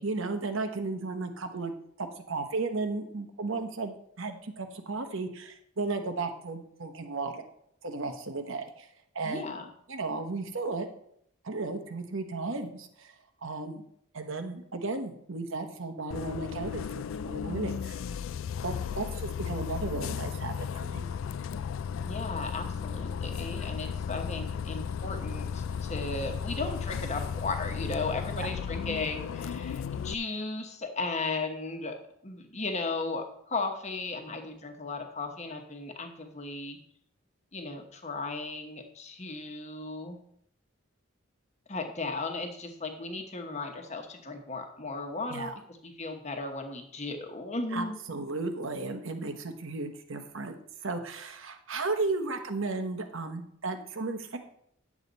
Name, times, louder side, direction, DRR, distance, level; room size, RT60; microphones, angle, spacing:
voice 1, 0.0-1.7 2.0-7.5 7.8-8.9 9.1-9.5 9.9-10.9 11.4-13.1 13.4-13.8 14.1-18.0 18.6-21.1 28.4-28.5 45.3-45.5 47.7-54.4, right 3 dB, 65° right, 7 dB, 1.0 m, -34 dB
voice 2, 9.2-9.7 22.0-31.9 32.2-36.8 37.5-40.2 41.7-45.5 45.8-48.0, left 3 dB, 30° left, 4 dB, 1.1 m, -36 dB
Bus, 16.1-30.1, left 7 dB, 65° left, 0.3 m, -35 dB
9.9 x 7.3 x 4.0 m, 0.71 s
head